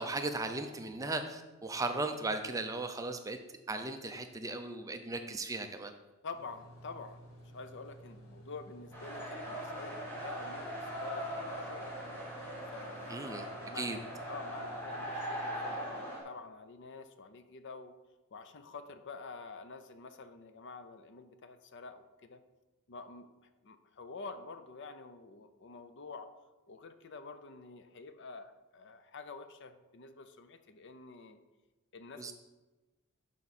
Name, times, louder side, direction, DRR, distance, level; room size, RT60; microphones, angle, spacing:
voice 1, 0.0-3.4 3.7-5.9 13.1-13.5 13.7-14.0 32.2-32.3, right 2 dB, 15° right, 6 dB, 0.5 m, -37 dB
voice 2, 6.2-7.2 7.5-11.3 11.6-12.0 12.7-18.0 18.3-22.4 22.9-26.3 26.7-31.4 31.9-32.3, left 4 dB, 55° left, 10 dB, 0.6 m, -48 dB
sound 1, 6.3-15.7, equal, 80° left, 2.1 m, -54 dB
sound 2, 8.9-16.2, equal, 10° left, 2.0 m, -40 dB
11.5 x 4.9 x 4.2 m, 1.1 s
head